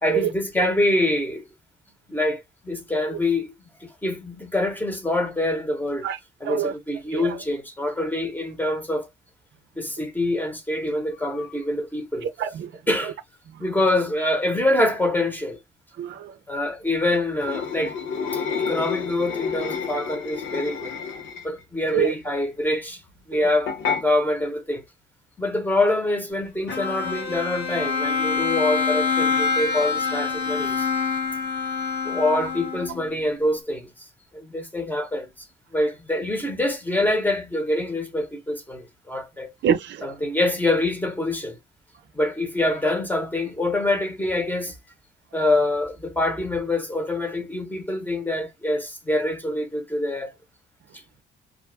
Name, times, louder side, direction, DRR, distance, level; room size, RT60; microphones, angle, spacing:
voice 1, 0.0-1.5 2.1-3.5 3.8-6.1 6.4-9.1 9.8-12.3 12.9-13.1 13.6-15.6 16.5-18.0 18.6-21.0 21.4-23.0 23.3-24.8 25.4-30.9 32.0-33.9 34.3-35.5 35.7-39.5 40.0-41.6 42.1-44.8 45.3-50.3, left 1 dB, 10° left, 0.9 m, -25 dB
voice 2, 12.2-12.7 16.0-16.3 17.1-17.2 21.9-22.1 39.6-40.1, right 9 dB, 65° right, 0.5 m, -25 dB
sound 1, 17.4-21.6 23.7-24.0, left 6 dB, 90° left, 0.8 m, -29 dB
Bowed string instrument, 26.7-33.1, left 5 dB, 60° left, 1.1 m, -26 dB
2.4 x 2.2 x 3.3 m
cardioid pair, 90°, 20 cm